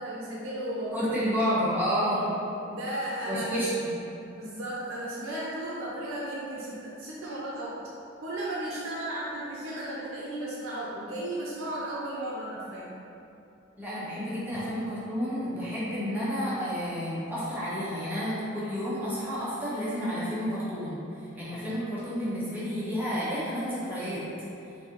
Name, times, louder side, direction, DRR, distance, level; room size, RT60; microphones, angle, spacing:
voice 1, 0.0-1.1 2.0-2.3 2.6-3.5 4.4-7.8 8.2-12.9, right 1 dB, 80° right, -6 dB, 0.5 m, -35 dB
voice 2, 0.9-2.3 3.3-3.9 13.8-24.2, equal, 10° right, -10 dB, 0.9 m, -30 dB
4.2 x 2.7 x 3.8 m, 2.7 s
head